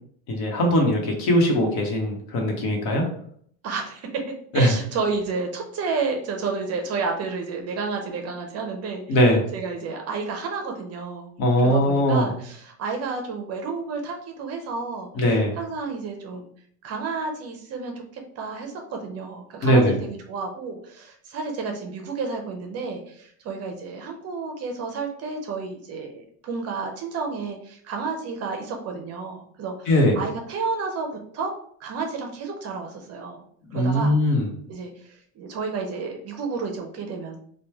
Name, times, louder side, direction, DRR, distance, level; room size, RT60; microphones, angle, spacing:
voice 1, 0.3-3.0 4.5-4.7 9.1-9.4 11.4-12.3 15.1-15.5 19.6-19.9 29.9-30.2 33.7-34.5, equal, 60° left, 1 dB, 1.1 m, -20 dB
voice 2, 3.6-4.2 4.5-11.3 11.6-15.1 15.6-16.5 16.8-31.1 31.3-31.5 31.8-33.4 33.7-34.2 34.7-37.4, right 4 dB, 35° right, 3 dB, 0.5 m, -31 dB
3.0 x 2.2 x 3.4 m, 0.62 s
cardioid pair, 135°, 42 cm